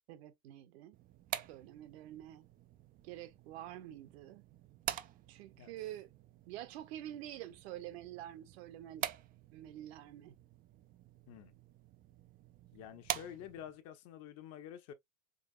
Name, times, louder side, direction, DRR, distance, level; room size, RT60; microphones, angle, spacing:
voice 1, 0.1-1.0 1.5-2.4 3.0-4.4 5.3-6.1 6.5-9.1 9.5-10.3, right 13 dB, 55° right, 1.0 m, -47 dB
sound 1, 0.9-13.8, right 12 dB, 25° right, 0.4 m, -46 dB
voice 2, 12.7-14.9, left 10 dB, 40° left, 1.1 m, -49 dB
5.3 x 3.5 x 2.4 m
hypercardioid pair, 95°, 39 cm